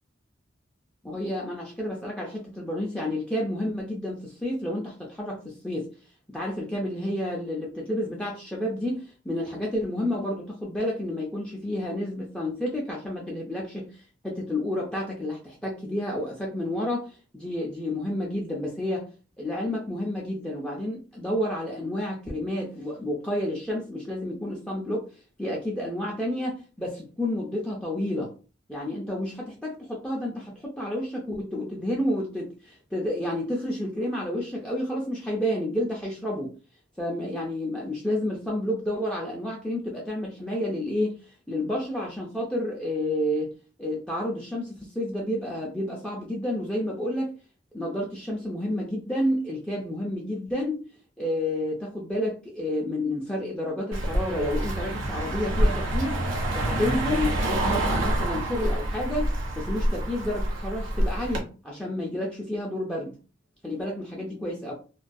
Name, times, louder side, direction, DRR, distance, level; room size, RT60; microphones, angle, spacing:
voice 1, 1.0-5.9 6.3-19.1 19.4-25.0 25.4-28.3 28.7-36.5 37.0-41.2 41.5-43.5 43.8-47.3 47.7-50.8 51.2-56.2 56.5-63.2 63.6-64.7, left 1 dB, 5° left, -3 dB, 0.4 m, -30 dB
Car passing by, 53.9-61.4, right 1 dB, 75° right, 0.8 m, -27 dB
2.3 x 2.3 x 2.5 m, 0.35 s
head